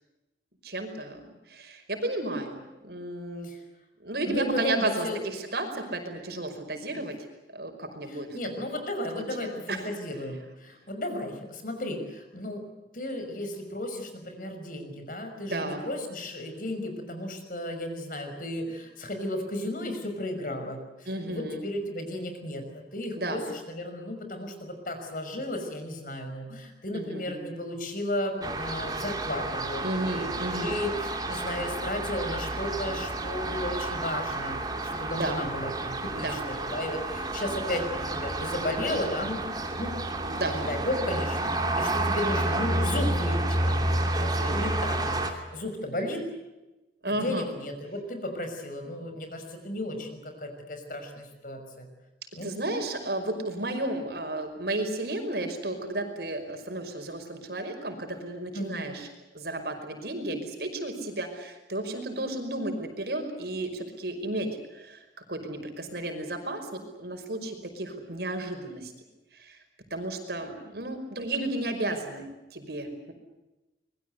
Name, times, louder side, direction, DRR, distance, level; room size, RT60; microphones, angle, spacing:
voice 1, 0.6-1.2 1.5-3.5 4.0-7.2 7.5-8.3 8.6-8.7 9.7-9.9 15.5-15.8 21.1-21.6 23.2-23.4 26.9-27.4 29.8-30.8 35.2-35.4 36.1-36.4 40.2-40.6 44.2-44.6 47.0-47.5 52.4-59.1 59.3-65.0 65.3-68.9 69.4-69.6 69.9-73.1, right 2 dB, 60° right, 6 dB, 5.4 m, -33 dB
voice 2, 4.3-5.2 8.0-12.6 12.9-39.5 39.8-39.9 40.5-46.2 47.0-51.9 52.3-52.5 58.5-58.9, left 1 dB, 50° left, 6 dB, 5.9 m, -34 dB
sound 1, 28.4-45.3, right 2 dB, 20° right, 2.8 m, -30 dB
26.0 x 22.5 x 8.2 m, 1.0 s
head